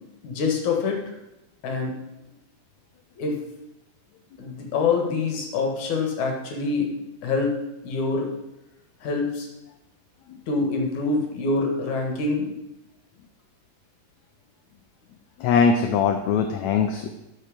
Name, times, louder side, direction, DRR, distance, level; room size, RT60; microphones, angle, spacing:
voice 1, 0.2-1.1 1.6-1.9 3.2-3.4 4.4-6.9 7.2-8.3 9.0-9.5 10.5-12.5, left 4 dB, 65° left, 2 dB, 2.9 m, -25 dB
voice 2, 15.4-17.2, left 6 dB, 80° left, 6 dB, 1.6 m, -21 dB
12.0 x 6.2 x 5.1 m, 0.91 s
omnidirectional pair, 3.9 m